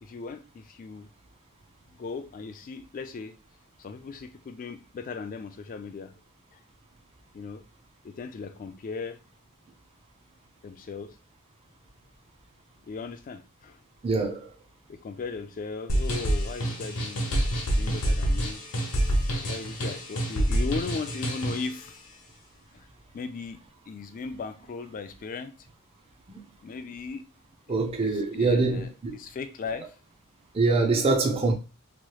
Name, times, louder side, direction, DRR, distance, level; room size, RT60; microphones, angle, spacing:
voice 1, 0.0-1.1 1.9-3.3 3.8-6.1 6.5-6.6 7.3-7.6 8.0-9.2 10.6-11.2 12.9-13.8 14.9-17.3 17.8-18.6 19.5-22.0 22.7-22.9 23.1-23.6 23.9-25.5 26.6-27.2 28.0-29.9, left 4 dB, 35° left, 0.3 m, -37 dB
voice 2, 14.0-14.5 26.3-26.4 27.7-29.2 30.5-31.5, right 3 dB, 25° right, 0.4 m, -24 dB
sound 1, 15.9-21.7, right 1 dB, 75° left, 0.8 m, -27 dB
3.1 x 3.0 x 2.2 m
head